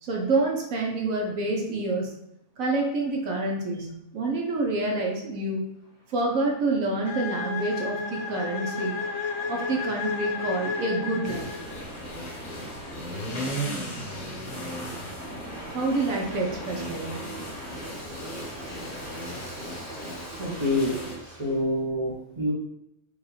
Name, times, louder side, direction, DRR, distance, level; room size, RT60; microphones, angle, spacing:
voice 1, 0.0-2.1 2.6-5.6 6.1-9.0 9.5-11.4 15.7-17.1, right 2 dB, 75° right, 0 dB, 1.1 m, -27 dB
Waves surf, 5.8-21.6, equal, 50° right, 1.6 m, -43 dB
sound 1, 7.0-11.9, left 5 dB, 65° left, 0.9 m, -32 dB
sound 2, 11.2-21.1, right 1 dB, 85° left, 1.5 m, -36 dB
voice 2, 20.4-20.9 21.2-22.5, left 1 dB, 30° right, -5 dB, 0.6 m, -27 dB
5.1 x 2.3 x 3.2 m, 0.81 s
omnidirectional pair, 1.5 m